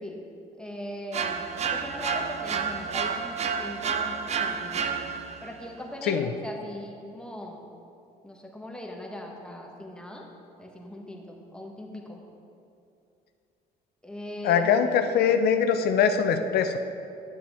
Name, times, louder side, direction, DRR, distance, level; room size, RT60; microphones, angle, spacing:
voice 1, 0.6-4.9 5.4-7.7 8.2-10.3 10.6-12.2 14.0-14.8, equal, 5° left, 0 dB, 1.1 m, -39 dB
sound 1, 1.1-5.5, right 6 dB, 40° right, 0.6 m, -30 dB
voice 2, 14.4-16.8, left 7 dB, 70° left, 7 dB, 0.6 m, -22 dB
10.0 x 7.6 x 3.4 m, 2.6 s
cardioid pair, 110°, 17 cm